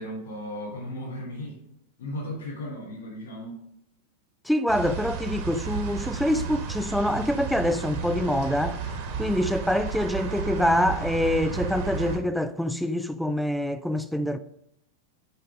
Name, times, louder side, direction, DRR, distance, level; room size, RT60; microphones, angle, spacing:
voice 1, 0.0-1.6 2.0-3.6, left 1 dB, 60° left, 3.3 m, -35 dB
voice 2, 4.5-8.8 9.2-14.4, left 1 dB, ahead, 0.4 m, -25 dB
sound 1, 4.7-12.2, right 6 dB, 50° right, 1.7 m, -33 dB
8.0 x 5.3 x 5.0 m
figure-of-eight pair, 90°, 0 cm